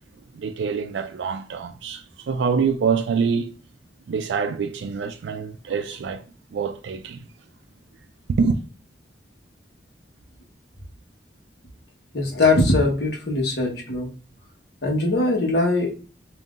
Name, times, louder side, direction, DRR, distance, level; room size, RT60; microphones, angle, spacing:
voice 1, 0.4-3.5 4.1-6.2 6.5-7.2 8.4-8.6, right 5 dB, 80° right, 0.4 m, -25 dB
voice 2, 12.1-14.1 14.8-16.0, left 2 dB, 65° left, 1.2 m, -21 dB
5.3 x 2.7 x 2.5 m
head